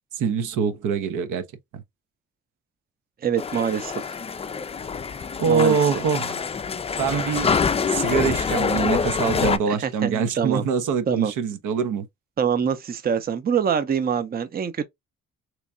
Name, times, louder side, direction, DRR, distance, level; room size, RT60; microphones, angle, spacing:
voice 1, 0.2-1.4 1.7-1.8 5.4-6.4 7.0-7.6 7.9-12.0, right 6 dB, 80° right, 0.8 m, -24 dB
voice 2, 3.2-4.1 5.5-5.8 9.7-10.6 11.1-11.3 12.4-14.8, right 7 dB, 30° right, 0.6 m, -24 dB
sound 1, 3.4-9.6, left 6 dB, 20° left, 0.3 m, -25 dB
3.4 x 3.1 x 2.5 m
cardioid pair, 90°, 30 cm